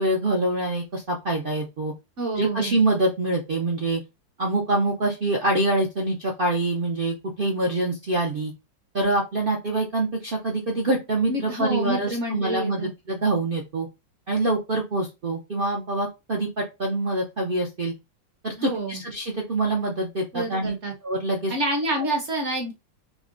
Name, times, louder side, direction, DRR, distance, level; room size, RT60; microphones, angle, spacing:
voice 1, 0.0-1.9 2.4-4.0 4.4-8.5 8.9-13.9 14.3-17.9 18.4-20.7 21.0-21.5, right 2 dB, 70° right, -1 dB, 0.5 m, -25 dB
voice 2, 2.2-2.8 11.3-12.9 18.6-19.0 20.3-20.9 21.5-22.7, right 2 dB, 50° right, 2 dB, 0.9 m, -28 dB
3.7 x 2.2 x 3.7 m, 0.24 s
omnidirectional pair, 2.0 m